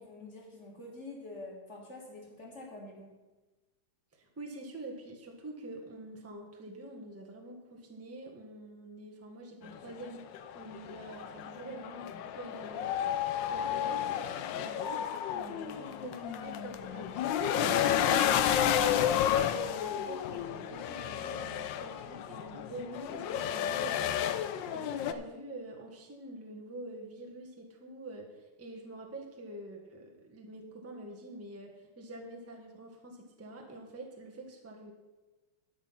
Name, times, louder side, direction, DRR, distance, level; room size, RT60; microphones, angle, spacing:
voice 1, 0.0-3.1, left 2 dB, 30° left, -2 dB, 2.9 m, -46 dB
voice 2, 4.1-10.3 10.5-13.1 13.5-34.9, right 1 dB, 10° right, 1 dB, 1.1 m, -46 dB
sound 1, 9.7-25.1, left 10 dB, 70° left, 1.2 m, -31 dB
12.5 x 6.4 x 5.7 m, 1.2 s
omnidirectional pair, 2.3 m